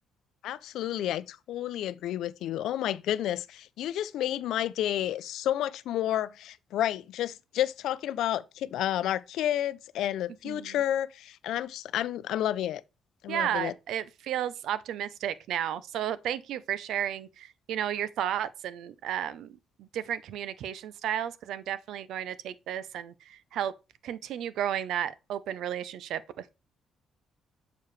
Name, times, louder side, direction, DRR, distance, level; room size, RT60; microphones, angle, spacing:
voice 1, 0.4-12.8 13.2-13.7, left 12 dB, 80° left, 0.4 m, -30 dB
voice 2, 10.4-10.8 13.3-23.7 24.0-26.5, right 10 dB, 75° right, 0.6 m, -33 dB
6.9 x 4.7 x 3.2 m
cardioid pair, 150°, 0 cm